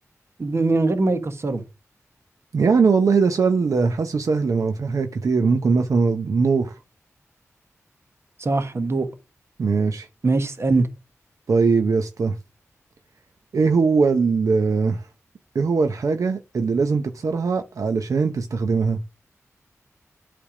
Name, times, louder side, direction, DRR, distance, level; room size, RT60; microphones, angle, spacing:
voice 1, 0.4-1.6 8.4-9.1 10.2-10.9, right 3 dB, 50° right, 1.2 m, -21 dB
voice 2, 2.5-6.8 9.6-10.1 11.5-12.4 13.5-15.1 15.5-19.0, right 4 dB, 75° right, 0.7 m, -20 dB
8.6 x 3.4 x 4.9 m
cardioid pair, 65°, 6 cm